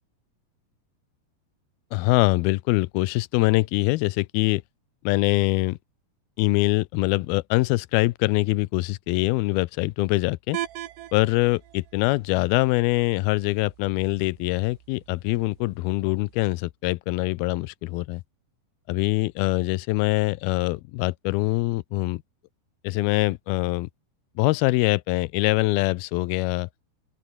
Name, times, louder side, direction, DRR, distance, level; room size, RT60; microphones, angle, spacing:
voice 1, 1.9-4.6 5.1-5.8 6.4-10.6 11.1-18.2 18.9-22.2 22.8-23.9 24.4-26.7, left 21 dB, 80° left, 2.4 m, -23 dB
sound 1, 10.5-16.5, right 13 dB, 85° right, 3.7 m, -41 dB
open air
omnidirectional pair, 4.7 m